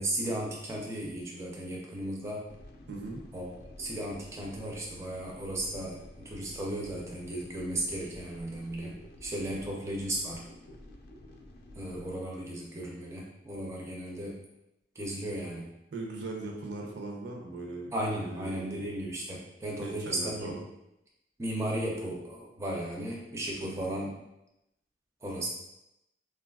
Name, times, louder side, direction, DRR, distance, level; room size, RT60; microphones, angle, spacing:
voice 1, 0.0-2.4 3.3-3.5 3.8-10.5 11.7-14.4 15.0-15.7 17.9-20.6 21.4-24.1 25.2-25.5, right 1 dB, 15° right, -3 dB, 0.4 m, -35 dB
sound 1, 2.5-12.2, left 1 dB, 60° left, 0.3 m, -51 dB
voice 2, 2.9-3.2 15.9-17.9 18.2-18.8 19.8-20.6 23.6-24.0, right 2 dB, 80° right, 1 dB, 0.5 m, -39 dB
3.1 x 2.3 x 2.2 m, 0.88 s
head